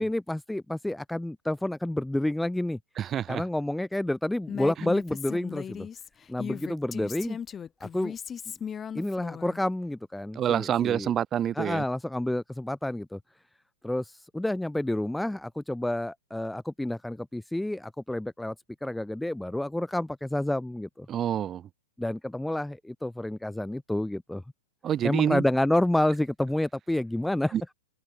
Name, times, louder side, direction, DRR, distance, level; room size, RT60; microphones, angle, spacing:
voice 1, 0.0-2.8 3.3-5.9 6.3-7.4 7.8-8.2 8.9-11.1 11.6-13.2 13.8-18.5 18.8-21.1 22.0-24.4 25.0-27.5, left 1 dB, 5° left, 0.4 m, -29 dB
voice 2, 3.0-3.4 10.3-11.8 21.1-21.7 24.8-25.4 27.5-27.6, right 10 dB, 25° right, 2.4 m, -27 dB
Female speech woman speaking, 4.5-9.6, left 7 dB, 20° left, 5.7 m, -37 dB
open air
hypercardioid pair, 135°, 0 cm